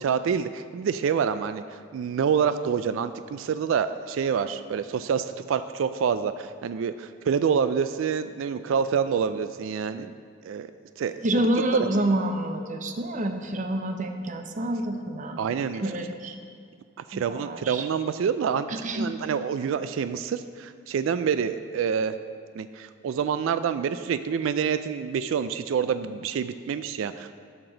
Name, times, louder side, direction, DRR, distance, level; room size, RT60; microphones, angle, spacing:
voice 1, 0.0-10.1 10.4-10.7 11.0-11.5 11.7-11.9 15.4-16.0 17.1-18.7 18.9-22.2 22.5-27.3, right 7 dB, 75° right, 12 dB, 0.3 m, -27 dB
voice 2, 11.2-15.6 15.8-16.4 17.1-17.9 18.7-19.1, right 1 dB, 40° right, 6 dB, 0.7 m, -28 dB
12.5 x 6.0 x 3.9 m, 2.2 s
head